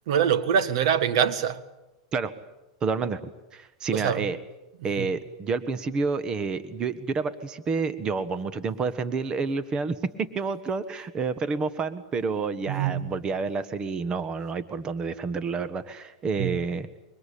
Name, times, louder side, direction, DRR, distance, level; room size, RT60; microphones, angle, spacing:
voice 1, 0.1-1.6 3.9-4.2 5.0-5.1 12.7-13.1 16.4-16.6, right 8 dB, 70° right, 1.7 m, -24 dB
voice 2, 2.8-3.2 3.5-4.4 4.8-17.0, right 4 dB, 25° right, 1.5 m, -29 dB
25.0 x 23.5 x 8.6 m
supercardioid pair, 135°, 3 cm